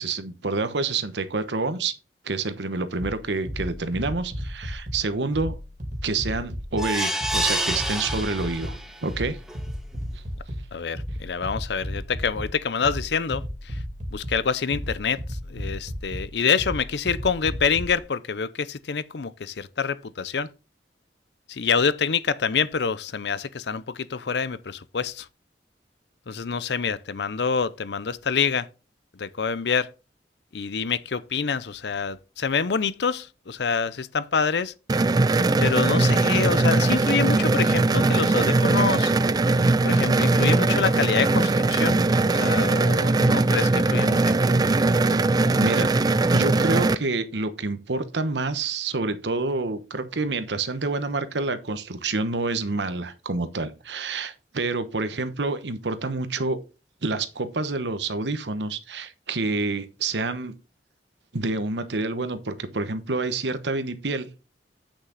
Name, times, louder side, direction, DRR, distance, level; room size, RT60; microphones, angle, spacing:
voice 1, 0.0-1.9 2.2-5.6 6.0-9.4 45.6-46.0 46.3-56.6 57.0-60.5 61.3-64.4, right 3 dB, 85° right, 1.0 m, -28 dB
sound 1, 3.0-18.0, equal, 45° right, 2.3 m, -34 dB
sound 2, 6.8-9.0 9.5-9.6 9.9-10.0, right 1 dB, 5° right, 1.1 m, -28 dB
voice 2, 10.7-13.8 14.1-20.5 21.5-25.3 26.3-28.7 29.1-29.9 30.5-34.7 35.6-39.1 39.8-42.0 42.2-44.3, left 5 dB, 70° left, 0.6 m, -26 dB
sound 3, 34.9-47.0, right 2 dB, 25° right, 0.3 m, -20 dB
8.4 x 6.4 x 3.9 m
head